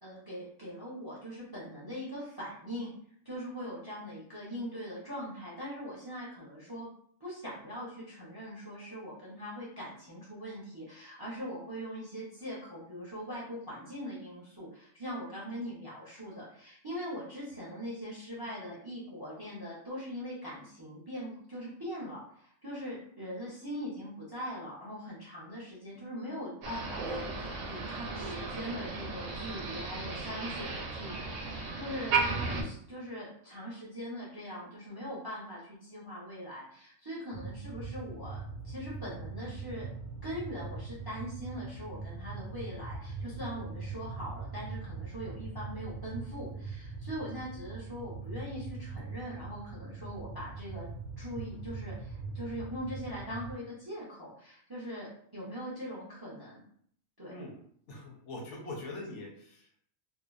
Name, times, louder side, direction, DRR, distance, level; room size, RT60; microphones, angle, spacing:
voice 1, 0.0-2.9 3.2-6.9 7.2-32.1 32.4-39.9 40.2-50.9 51.2-56.6 57.2-57.4, equal, 25° right, -7 dB, 0.5 m, -41 dB
Motor vehicle (road), 26.6-32.6, right 4 dB, 70° right, 0.9 m, -35 dB
sound 1, 37.3-53.6, right 4 dB, 90° left, 1.2 m, -42 dB
voice 2, 57.9-59.8, left 2 dB, 70° left, -1 dB, 0.8 m, -43 dB
2.6 x 2.0 x 2.4 m, 0.63 s
omnidirectional pair, 1.4 m